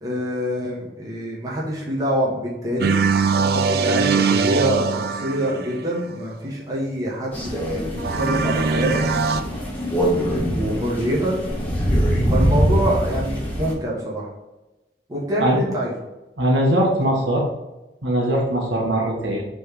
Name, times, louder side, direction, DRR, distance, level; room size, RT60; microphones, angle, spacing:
voice 1, 0.0-3.0 3.3-9.5 10.5-11.4 12.3-14.3 15.1-15.9, equal, 20° right, -5 dB, 1.6 m, -25 dB
sound 1, 2.8-6.0 8.0-9.4, right 5 dB, 60° right, 0.4 m, -21 dB
Crow, 7.3-13.7, equal, 10° left, 1.5 m, -23 dB
voice 2, 16.4-17.5 18.0-19.4, right 1 dB, 85° right, -1 dB, 1.3 m, -20 dB
6.2 x 3.5 x 4.7 m, 1.0 s
head